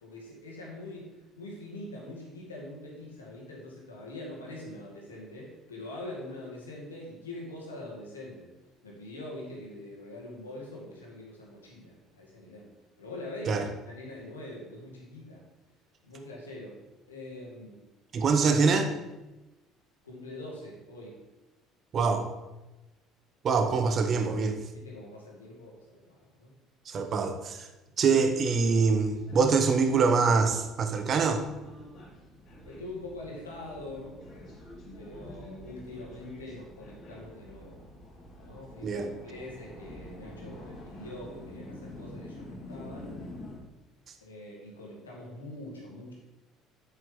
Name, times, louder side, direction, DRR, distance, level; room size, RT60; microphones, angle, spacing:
voice 1, 0.0-8.5 8.8-12.7 13.0-15.4 16.0-16.8 17.1-17.8 20.0-21.2 24.7-26.5 27.8-27.9 32.7-34.5 35.0-37.8 38.4-43.2 44.2-46.1, left 1 dB, 80° left, -3 dB, 2.1 m, -43 dB
voice 2, 18.1-18.9 21.9-22.3 23.4-24.6 26.9-27.7 28.0-31.4 38.8-39.1, right 5 dB, 40° right, 7 dB, 1.0 m, -24 dB
sound 1, 28.4-43.6, left 1 dB, 45° left, 2.7 m, -47 dB
8.0 x 7.7 x 3.8 m, 1.0 s
figure-of-eight pair, 55°, 0 cm